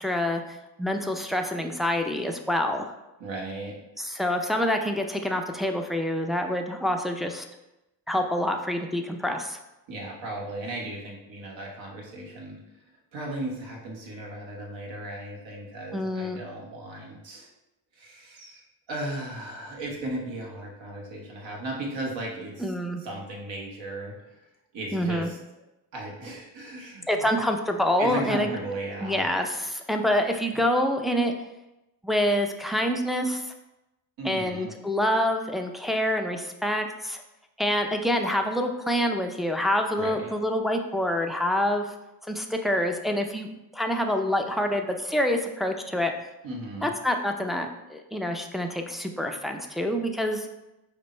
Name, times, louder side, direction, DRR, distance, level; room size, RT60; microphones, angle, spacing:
voice 1, 0.0-2.9 4.0-7.4 8.1-9.6 15.9-16.4 22.6-23.0 24.9-25.3 27.1-28.5 29.0-31.3 32.0-33.5 34.2-37.2 37.6-41.9 42.3-46.1 46.8-50.5, left 1 dB, ahead, 3 dB, 0.3 m, -26 dB
voice 2, 3.2-3.8 4.1-4.2 9.9-12.6 13.1-17.5 17.9-24.4 24.7-25.4 25.9-27.2 28.0-29.3 30.5-30.6 34.2-34.7 39.9-40.3 46.4-46.9, right 1 dB, 70° right, -1 dB, 1.3 m, -36 dB
5.1 x 2.1 x 4.3 m, 0.95 s
cardioid pair, 75°, 47 cm